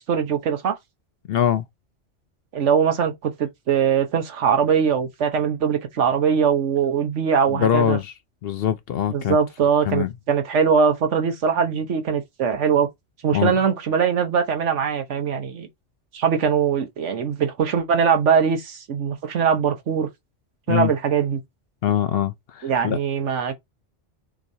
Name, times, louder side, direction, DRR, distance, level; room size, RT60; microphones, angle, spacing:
voice 1, 0.1-0.7 2.5-8.0 9.1-12.9 13.2-15.7 16.1-20.1 20.7-21.4 22.6-23.5, right 7 dB, 70° right, 1.3 m, -21 dB
voice 2, 1.3-1.7 7.5-8.1 8.4-9.4 9.8-10.1 13.3-13.6 20.7-20.9 21.8-23.0, left 10 dB, 65° left, 0.7 m, -23 dB
6.1 x 3.0 x 2.7 m
omnidirectional pair, 1.3 m